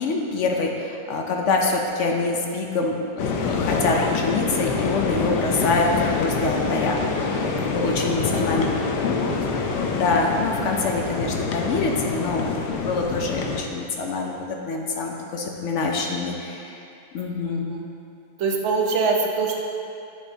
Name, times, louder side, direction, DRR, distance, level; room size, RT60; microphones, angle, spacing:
voice 1, 0.0-7.0 7.3-8.6 9.0-9.1 9.9-16.8 17.1-17.7, left 3 dB, 65° left, 1 dB, 0.7 m, -25 dB
sound 1, 3.2-13.6, left 4 dB, 90° left, 1.2 m, -26 dB
voice 2, 8.4-8.8 17.4-17.9 18.4-19.5, right 4 dB, 55° right, 0 dB, 0.9 m, -24 dB
9.7 x 5.3 x 2.7 m, 2.6 s
omnidirectional pair, 1.8 m